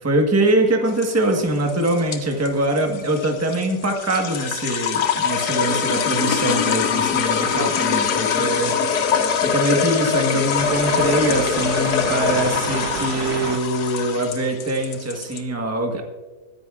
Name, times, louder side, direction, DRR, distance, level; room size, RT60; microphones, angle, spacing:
voice 1, 0.0-8.7 9.4-16.0, right 1 dB, 10° right, 2 dB, 1.2 m, -23 dB
sound 1, 0.9-15.4, left 7 dB, 75° left, 1.5 m, -23 dB
sound 2, 8.5-13.6, right 10 dB, 75° right, 1.1 m, -32 dB
21.0 x 10.5 x 2.5 m, 1.3 s
omnidirectional pair, 1.7 m